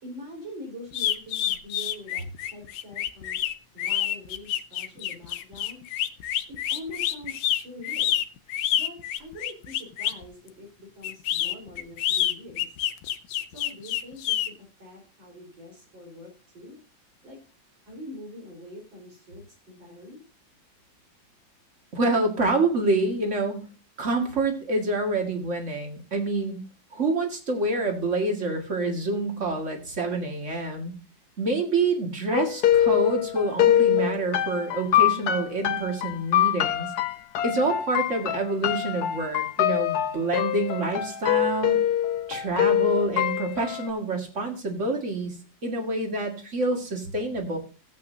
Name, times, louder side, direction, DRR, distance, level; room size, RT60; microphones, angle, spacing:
voice 1, 0.0-3.4 3.7-5.8 6.7-8.1 8.7-12.7 13.5-16.8 17.2-17.4 17.8-20.2, left 1 dB, 80° right, 0 dB, 5.0 m, -44 dB
sound 1, 0.9-10.2 11.0-14.5, left 11 dB, 85° left, 1.5 m, -27 dB
voice 2, 21.9-23.6 24.0-26.6 26.9-30.9 31.4-36.9 37.4-41.8 42.3-45.3 45.6-47.6, right 2 dB, 40° right, 3 dB, 2.2 m, -27 dB
sound 2, 32.3-43.9, left 11 dB, 65° left, 1.1 m, -24 dB
16.0 x 8.3 x 2.7 m, 0.35 s
omnidirectional pair, 2.1 m